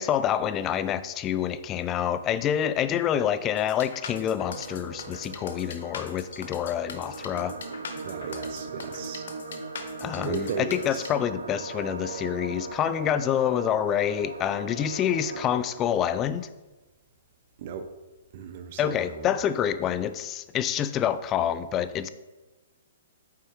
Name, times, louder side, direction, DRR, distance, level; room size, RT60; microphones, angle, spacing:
voice 1, 0.0-7.5 10.0-16.5 18.8-22.1, left 9 dB, 25° left, 14 dB, 0.3 m, -27 dB
sound 1, 3.6-11.1, left 6 dB, 70° left, 0.7 m, -41 dB
sound 2, 4.4-15.6, right 3 dB, 85° right, 0.6 m, -39 dB
voice 2, 8.0-9.3 10.2-11.1 17.6-17.9 18.3-19.3, right 5 dB, 50° right, 8 dB, 0.6 m, -35 dB
8.1 x 4.6 x 3.0 m, 1.1 s
hypercardioid pair, 140°, 0 cm